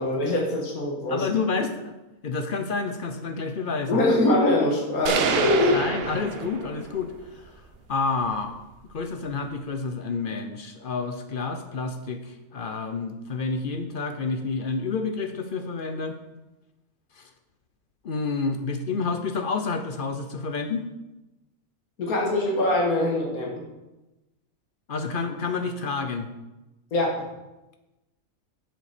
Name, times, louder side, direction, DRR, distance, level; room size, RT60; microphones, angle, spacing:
voice 1, 0.0-1.3 3.9-5.8 22.0-23.6 26.9-27.3, left 1 dB, 75° left, -1 dB, 1.9 m, -23 dB
voice 2, 1.1-1.9 2.2-4.0 5.7-7.5 7.9-8.5 8.9-16.2 17.2-17.3 18.0-20.9 24.9-26.3, left 4 dB, 50° left, 7 dB, 0.6 m, -29 dB
sound 1, 5.1-7.0, right 5 dB, 55° right, 0.8 m, -27 dB
7.8 x 6.7 x 5.0 m, 1.0 s
omnidirectional pair, 1.5 m